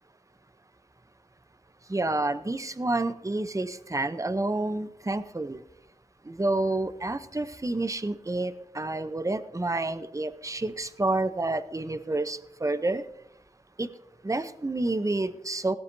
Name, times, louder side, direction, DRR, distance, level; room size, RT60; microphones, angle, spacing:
voice 1, 1.9-5.6 6.3-13.0 13.8-13.9 14.2-15.8, right 2 dB, 25° right, 12 dB, 0.7 m, -29 dB
17.5 x 12.5 x 2.7 m, 0.80 s
wide cardioid pair, 60°, 13 cm